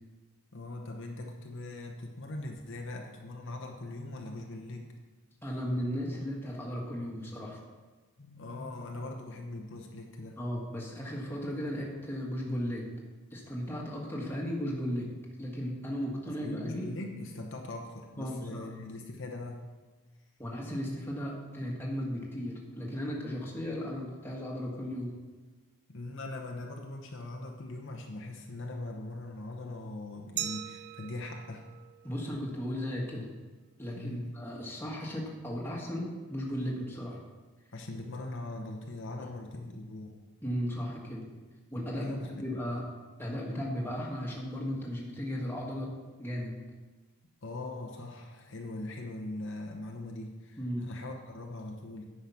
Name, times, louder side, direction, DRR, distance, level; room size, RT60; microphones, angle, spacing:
voice 1, 0.5-4.9 8.2-10.4 16.3-19.6 25.9-31.6 34.0-34.3 37.7-40.1 41.9-42.3 47.4-52.1, left 2 dB, 55° left, 1 dB, 0.9 m, -41 dB
voice 2, 5.4-7.6 10.4-12.9 13.3-15.1 15.4-16.9 18.2-18.7 20.4-25.1 32.0-33.2 33.8-37.2 40.4-41.2 41.7-42.8 43.2-45.9 46.2-46.5 50.6-50.8, equal, 10° left, -3 dB, 1.5 m, -35 dB
Glass, 30.4-33.1, right 12 dB, 45° right, 0.4 m, -41 dB
9.5 x 5.6 x 5.8 m, 1.3 s
head